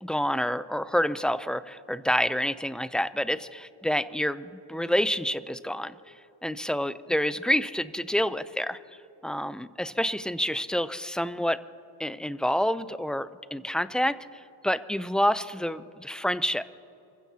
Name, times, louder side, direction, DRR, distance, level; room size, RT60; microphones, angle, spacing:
voice 1, 0.0-5.9 6.4-8.8 9.2-11.6 12.0-14.2 14.6-16.6, equal, ahead, 13 dB, 0.5 m, -28 dB
28.5 x 15.5 x 2.9 m, 2.9 s
cardioid pair, 65°, 48 cm